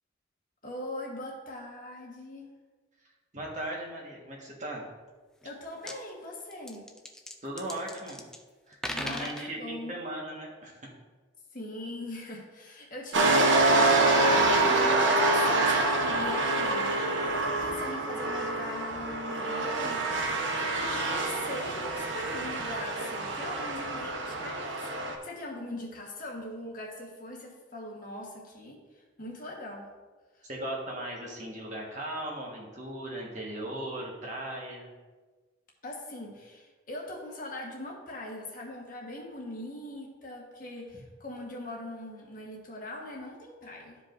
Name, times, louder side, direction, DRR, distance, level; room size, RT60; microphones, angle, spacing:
voice 1, 0.6-2.5 5.4-6.8 8.9-9.9 11.5-29.9 30.3-30.4 35.8-44.0, left 1 dB, 45° left, -2 dB, 1.4 m, -41 dB
voice 2, 3.3-4.9 7.4-8.2 8.7-10.8 30.4-34.9, right 1 dB, 40° right, -2 dB, 1.5 m, -38 dB
sound 1, 5.4-5.5 5.7-6.0 6.5-8.4 8.7-9.5, left 1 dB, 5° left, 0.4 m, -38 dB
sound 2, 13.1-25.2, right 2 dB, 80° right, 0.9 m, -26 dB
13.0 x 5.0 x 2.6 m, 1.3 s
head